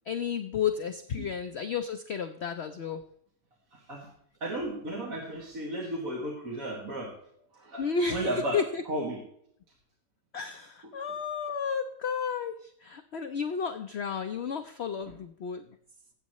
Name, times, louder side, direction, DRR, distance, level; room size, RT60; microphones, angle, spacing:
voice 1, 0.1-3.0 7.8-8.3 8.5-8.8 10.3-15.7, left 6 dB, 60° left, 7 dB, 0.7 m, -32 dB
voice 2, 3.7-4.1 4.4-7.1 7.5-7.8 8.1-8.6 8.9-9.2 15.1-15.2, right 1 dB, 50° right, -2 dB, 2.3 m, -34 dB
18.0 x 8.4 x 3.0 m, 0.69 s
omnidirectional pair, 1.9 m